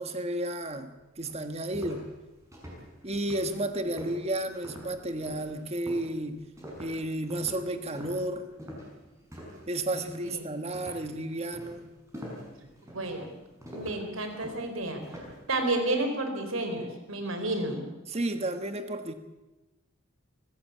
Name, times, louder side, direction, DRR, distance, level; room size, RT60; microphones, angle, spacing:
voice 1, 0.0-2.1 3.0-6.4 6.8-8.5 9.7-11.9 18.1-19.1, right 1 dB, 30° right, 8 dB, 1.4 m, -32 dB
sound 1, 0.8-0.9 1.2-9.7 10.0-10.4 10.7-15.5, equal, 15° right, 6.0 m, -45 dB
voice 2, 12.9-13.3 13.7-15.0 15.5-17.9, right 2 dB, 80° right, 6 dB, 4.5 m, -31 dB
23.5 x 15.5 x 8.4 m, 1.0 s
head